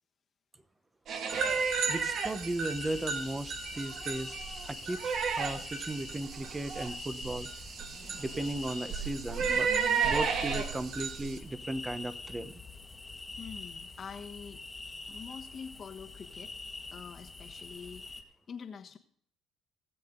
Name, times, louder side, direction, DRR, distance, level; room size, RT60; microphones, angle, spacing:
sound 1, 1.1-11.4, right 6 dB, 60° right, 1.2 m, -33 dB
sound 2, 1.3-18.2, left 3 dB, 20° left, 1.4 m, -45 dB
voice 1, 1.9-4.3 4.7-7.5 8.1-9.7 10.0-12.6, right 2 dB, 15° right, 12 dB, 1.0 m, -36 dB
voice 2, 13.4-14.6 15.1-16.5 16.9-18.1 18.5-19.0, left 6 dB, 45° left, 5 dB, 1.2 m, -45 dB
18.5 x 7.7 x 3.8 m, 0.63 s
cardioid pair, 95°, 0 cm